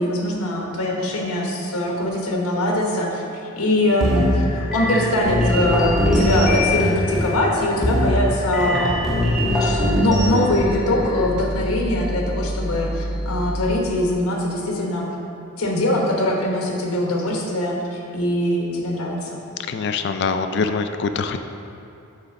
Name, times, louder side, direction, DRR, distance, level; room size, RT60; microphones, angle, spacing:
voice 1, 0.0-3.2 3.6-15.1 15.6-19.4, left 1 dB, 85° left, -1 dB, 1.1 m, -22 dB
sound 1, 3.9-13.7, equal, ahead, 0.6 m, -22 dB
voice 2, 19.7-21.4, left 4 dB, 50° left, 8 dB, 0.3 m, -24 dB
7.8 x 3.3 x 5.9 m, 2.7 s
head